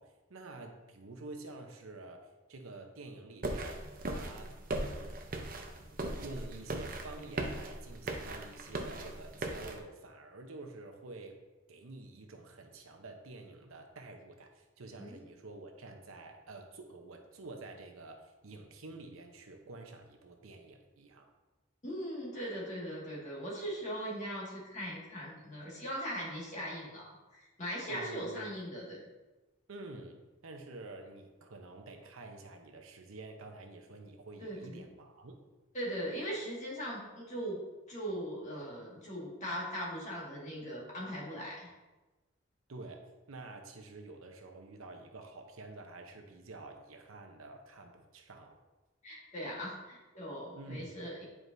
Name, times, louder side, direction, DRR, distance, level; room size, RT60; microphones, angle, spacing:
voice 1, 0.0-4.5 4.8-5.2 5.7-5.8 6.2-11.4 11.7-21.3 27.9-28.5 29.7-35.4 42.7-48.6 50.5-51.0, right 2 dB, 80° right, 4 dB, 0.8 m, -49 dB
sound 1, 3.4-9.8, right 2 dB, 40° right, 0.6 m, -39 dB
voice 2, 21.8-29.0 34.4-34.8 35.7-37.6 37.9-41.7 49.0-51.3, equal, 35° left, -5 dB, 1.8 m, -40 dB
9.2 x 4.8 x 2.6 m, 1.1 s
head